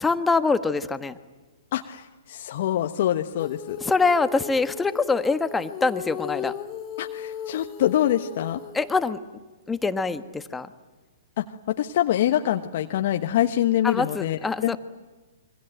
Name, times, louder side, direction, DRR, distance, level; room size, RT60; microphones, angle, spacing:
voice 1, 0.0-1.2 3.8-6.5 8.7-9.2 9.7-10.7 13.8-14.8, left 4 dB, 10° left, 10 dB, 1.3 m, -24 dB
voice 2, 1.7-3.8 7.0-8.6 11.4-14.8, left 12 dB, 50° left, 6 dB, 1.2 m, -25 dB
Female singing, 3.4-9.1, left 9 dB, 30° left, 1.4 m, -37 dB
27.5 x 23.5 x 9.1 m, 1.3 s
hypercardioid pair, 125°, 0 cm